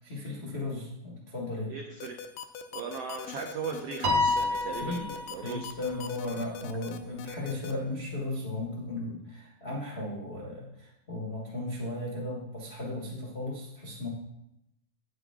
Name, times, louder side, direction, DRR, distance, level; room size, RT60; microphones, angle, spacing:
voice 1, 0.0-1.7 4.7-5.0 5.4-14.1, left 2 dB, 65° left, -4 dB, 0.6 m, -36 dB
voice 2, 1.7-2.2 2.7-5.7, right 6 dB, 90° right, 3 dB, 1.3 m, -38 dB
sound 1, 2.0-7.7, left 8 dB, 85° left, 2.3 m, -41 dB
Piano, 4.0-5.6, left 2 dB, 70° right, 1.1 m, -28 dB
9.3 x 8.9 x 3.6 m, 0.81 s
omnidirectional pair, 3.9 m